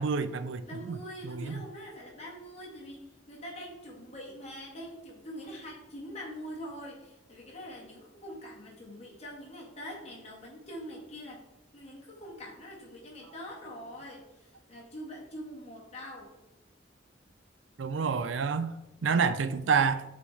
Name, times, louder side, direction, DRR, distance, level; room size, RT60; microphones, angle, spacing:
voice 1, 0.0-0.9 1.2-1.6 17.8-18.7 19.0-20.0, right 5 dB, 90° right, 12 dB, 0.5 m, -28 dB
voice 2, 0.7-11.4 11.7-16.3, equal, 35° left, -3 dB, 1.9 m, -44 dB
7.3 x 4.4 x 3.4 m, 0.95 s
head